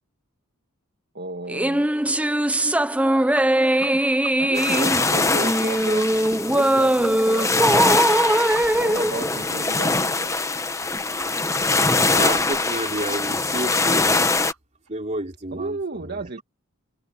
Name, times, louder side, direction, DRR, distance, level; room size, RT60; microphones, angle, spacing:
voice 1, 1.1-1.9 3.8-4.1 4.4-6.1 6.5-8.3 8.8-10.5 15.5-16.4, right 2 dB, 50° right, 1.4 m, -33 dB
sound 1, 1.5-10.1, right 1 dB, 5° right, 0.6 m, -21 dB
sound 2, 3.3-3.4 3.8-3.9 4.2-4.3 4.6-4.7 5.0-5.1 5.4-5.5 5.8-5.9 6.2-6.3 6.6-6.7 7.0-7.5 7.7-7.8 8.1-8.2 8.5-8.6 8.9-9.0 9.3-9.4 9.7-9.8 10.1-10.2 10.4-10.5 10.8-10.9 11.2-11.3 11.5-11.6 11.9-12.0 12.2-12.3 12.6-12.7 13.0-13.1 13.3-13.4 13.7-13.8 14.1-14.2 14.5-14.6 14.9-15.0, right 5 dB, 80° right, 8.0 m, -38 dB
sound 3, 4.6-14.5, left 3 dB, 15° left, 0.9 m, -23 dB
voice 2, 12.0-14.2 14.9-15.8 16.1-16.2, right 2 dB, 30° right, 3.2 m, -30 dB
head